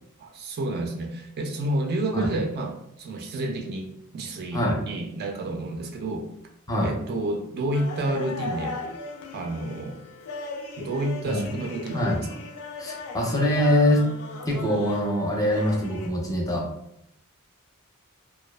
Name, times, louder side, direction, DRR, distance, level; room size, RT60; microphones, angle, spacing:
voice 1, 0.2-3.9 4.1-6.3 6.8-8.8 9.3-10.0 10.8-12.4, right 1 dB, 45° right, 3 dB, 0.3 m, -30 dB
sound 1, 7.7-16.1, left 3 dB, 75° left, 0.4 m, -37 dB
voice 2, 12.8-14.1 14.5-16.7, left 1 dB, 15° left, -2 dB, 0.4 m, -23 dB
2.4 x 2.3 x 2.2 m, 0.77 s
head